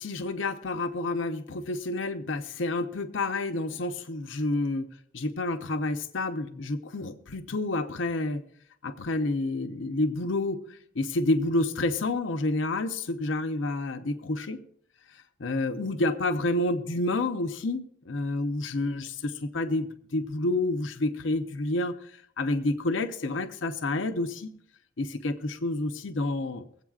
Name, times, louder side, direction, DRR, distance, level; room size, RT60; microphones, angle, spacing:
voice 1, 0.0-4.9 5.1-8.4 8.8-10.6 11.0-14.6 15.4-21.9 22.4-24.5 25.0-26.7, left 2 dB, 70° left, 8 dB, 0.7 m, -29 dB
23.5 x 8.2 x 2.4 m, 0.68 s
head